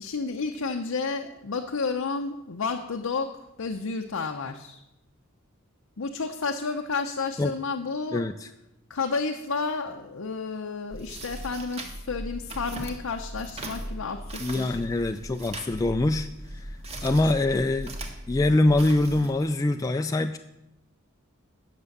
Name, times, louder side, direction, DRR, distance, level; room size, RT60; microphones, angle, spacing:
voice 1, 0.0-4.8 6.0-8.3 8.9-14.8 17.2-17.3, left 4 dB, 90° left, 4 dB, 0.7 m, -31 dB
voice 2, 8.1-8.5 14.4-16.7 17.0-17.9 18.3-20.4, left 2 dB, 15° left, 6 dB, 0.3 m, -24 dB
sound 1, 10.9-19.3, right 1 dB, 30° right, 1.5 m, -38 dB
9.7 x 6.8 x 6.6 m, 0.89 s
head